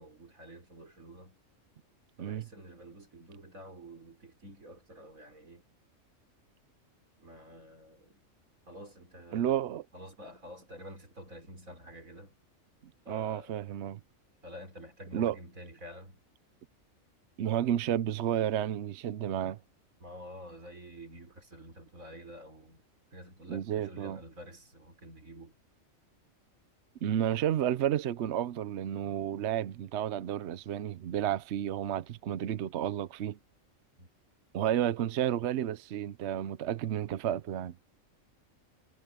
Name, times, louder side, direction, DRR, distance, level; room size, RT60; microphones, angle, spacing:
voice 1, 0.0-1.4 2.2-5.7 7.2-8.2 8.7-9.7 9.9-12.3 13.1-13.7 14.4-16.2 20.0-22.8 23.1-25.5 34.0-34.1, equal, 90° right, 5.3 m, -49 dB
voice 2, 9.3-9.8 13.1-14.0 15.1-15.4 17.4-19.6 23.5-24.2 27.0-33.4 34.5-37.8, right 10 dB, 60° right, 0.9 m, -31 dB
omnidirectional pair, 1.4 m